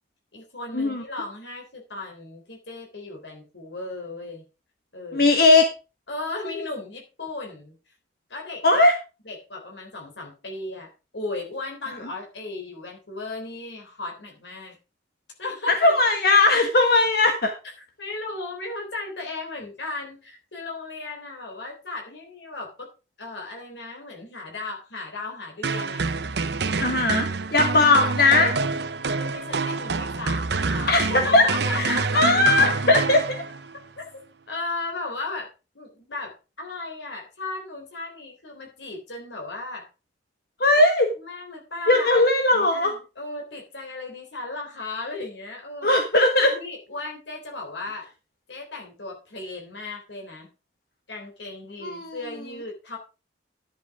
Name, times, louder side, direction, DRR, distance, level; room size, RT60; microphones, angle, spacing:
voice 1, 0.3-4.4 4.9-5.3 6.1-7.7 8.3-8.8 9.2-14.7 15.4-15.7 18.0-22.9 23.2-26.0 29.1-32.4 34.0-34.1 34.5-39.9 41.2-42.3 42.5-46.0 46.4-48.1 48.5-50.5 51.1-53.0, left 2 dB, 75° left, 0 dB, 3.6 m, -35 dB
voice 2, 5.1-5.7 8.6-8.9 15.7-17.5 26.8-28.5 30.9-31.5 31.8-33.4 40.6-41.1 41.9-42.9 45.8-46.5 51.8-52.2, left 2 dB, 55° left, 5 dB, 1.4 m, -19 dB
sound 1, 25.6-33.8, right 4 dB, 65° right, 0.8 m, -27 dB
11.5 x 7.8 x 4.8 m, 0.31 s
head